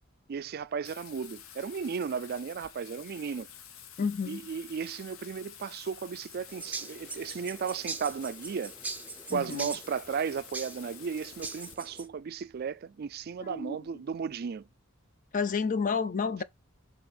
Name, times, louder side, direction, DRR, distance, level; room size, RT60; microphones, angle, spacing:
voice 1, 0.3-3.5 4.3-8.7 9.3-14.7, right 6 dB, 50° right, 0.4 m, -35 dB
Bathtub (filling or washing), 0.8-11.7, left 9 dB, 80° left, 0.8 m, -50 dB
voice 2, 4.0-4.4 9.3-9.7 13.4-13.8 15.3-16.4, left 5 dB, 40° left, 0.5 m, -30 dB
sound 1, 6.5-12.1, right 3 dB, 10° right, 0.6 m, -41 dB
7.0 x 3.5 x 4.0 m
head